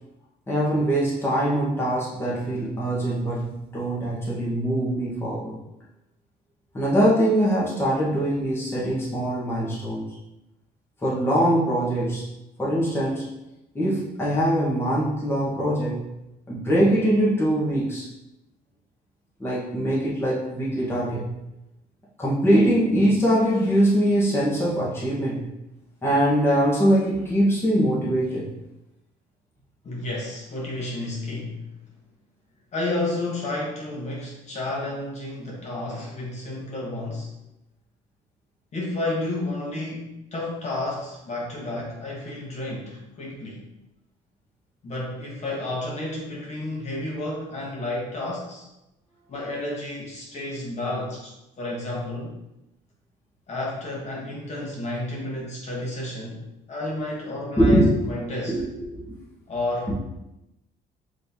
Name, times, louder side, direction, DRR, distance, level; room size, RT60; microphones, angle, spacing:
voice 1, 0.5-5.5 6.7-10.1 11.0-12.3 12.6-13.3 13.7-16.1 16.5-18.1 19.4-21.4 22.2-25.5 26.0-28.5 57.6-57.9 58.5-59.1, equal, 15° left, -7 dB, 1.3 m, -22 dB
voice 2, 29.8-31.7 32.7-37.3 38.7-43.6 44.8-48.7 49.3-52.3 53.5-56.4 56.7-58.6 59.5-60.1, left 2 dB, 40° left, -4 dB, 1.3 m, -31 dB
5.5 x 3.2 x 2.7 m, 0.91 s
cardioid pair, 110°, 17 cm